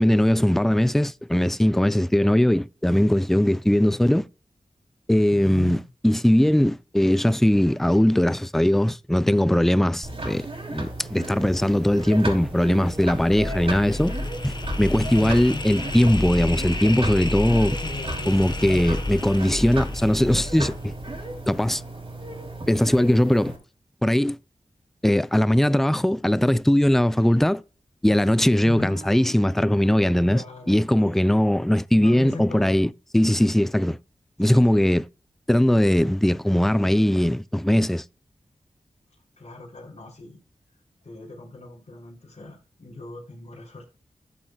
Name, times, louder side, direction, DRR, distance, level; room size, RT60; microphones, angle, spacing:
voice 1, 0.0-4.3 5.1-14.1 14.4-17.8 18.3-20.9 21.5-21.8 22.7-23.5 24.0-24.4 25.0-27.6 28.0-30.4 30.7-34.0 34.4-35.0 35.5-38.0, left 1 dB, ahead, 0.4 m, -20 dB
voice 2, 5.3-5.9 15.2-15.6 17.8-18.6 28.6-29.0 30.3-31.4 32.0-32.7 34.4-34.9 39.4-40.4 41.0-43.8, left 3 dB, 60° left, 3.5 m, -39 dB
sound 1, 10.0-23.6, right 2 dB, 45° right, 3.1 m, -35 dB
sound 2, 12.4-21.5, left 2 dB, 35° left, 1.2 m, -31 dB
Acoustic guitar, 28.8-32.1, right 1 dB, 80° left, 2.9 m, -51 dB
12.5 x 7.5 x 2.3 m
cardioid pair, 45°, 13 cm